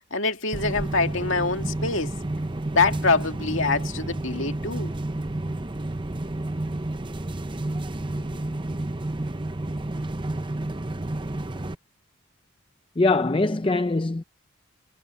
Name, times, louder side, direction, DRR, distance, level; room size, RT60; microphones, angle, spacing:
voice 1, 0.0-2.1 2.8-4.9, left 3 dB, 60° left, 2.3 m, -25 dB
sound 1, 0.5-11.7, right 1 dB, 20° right, 0.7 m, -30 dB
voice 2, 13.0-14.2, left 2 dB, 25° left, 0.5 m, -22 dB
head